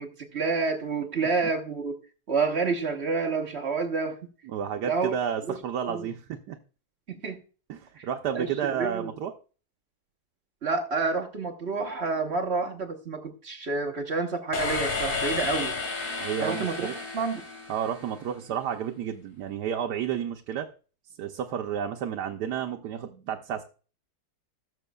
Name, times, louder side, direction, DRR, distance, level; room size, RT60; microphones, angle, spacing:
voice 1, 0.0-2.0 2.3-4.2 4.8-5.1 5.5-5.6 5.9-6.1 7.1-7.4 8.3-9.1 10.6-15.7 16.4-16.9 17.1-17.4, right 4 dB, 45° right, 2 dB, 1.2 m, -29 dB
voice 2, 4.4-6.6 7.7-9.3 16.2-16.9 17.7-20.7 21.2-23.6, right 8 dB, 80° right, 4 dB, 1.3 m, -31 dB
sound 1, 14.5-18.4, left 3 dB, 50° left, 2.1 m, -32 dB
17.5 x 7.2 x 2.3 m, 0.37 s
omnidirectional pair, 1.8 m